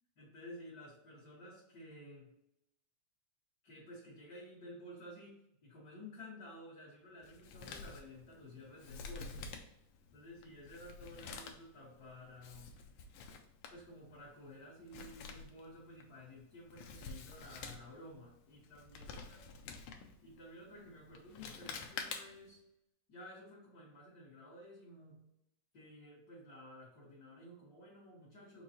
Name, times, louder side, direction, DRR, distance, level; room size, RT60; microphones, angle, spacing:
voice 1, 0.2-2.3 3.6-9.5 10.1-12.7 13.7-19.4 20.2-22.6 23.1-25.3 25.7-28.6, left 1 dB, 45° left, -10 dB, 1.2 m, -53 dB
Male speech man speaking, 7.2-22.5, left 5 dB, 90° left, 1.3 m, -50 dB
5.2 x 2.3 x 4.1 m, 0.82 s
omnidirectional pair, 3.3 m